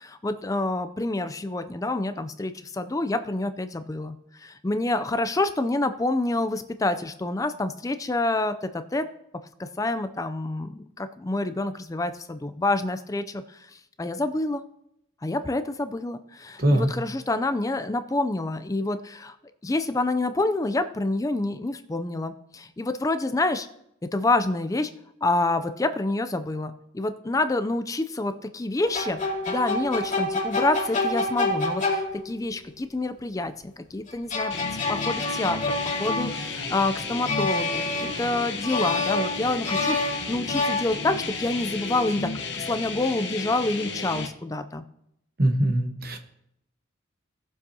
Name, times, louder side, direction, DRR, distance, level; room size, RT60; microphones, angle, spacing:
voice 1, 0.0-9.1 9.6-14.6 15.2-19.4 19.6-23.7 24.0-24.9 25.2-29.2 29.5-35.6 36.0-44.8, left 2 dB, 15° left, 10 dB, 0.4 m, -27 dB
voice 2, 16.6-16.9 45.4-46.2, right 1 dB, 50° right, 5 dB, 1.1 m, -22 dB
sound 1, 28.8-32.5 34.1-36.8 37.3-38.3 38.6-41.3, left 2 dB, 40° left, 2.4 m, -28 dB
sound 2, 34.5-44.3, left 4 dB, 60° left, 1.0 m, -33 dB
17.5 x 7.0 x 2.8 m, 0.79 s
head